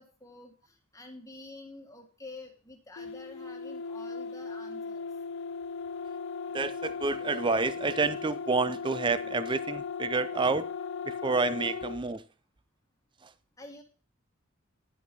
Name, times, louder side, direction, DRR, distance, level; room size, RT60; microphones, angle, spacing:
voice 1, 0.0-5.1 13.6-13.8, left 2 dB, 15° left, 1.6 m, -48 dB
sound 1, 3.0-12.0, left 5 dB, 60° left, 0.4 m, -37 dB
voice 2, 6.5-10.7 11.1-12.2, right 4 dB, 20° right, 0.5 m, -29 dB
11.0 x 5.7 x 5.3 m
head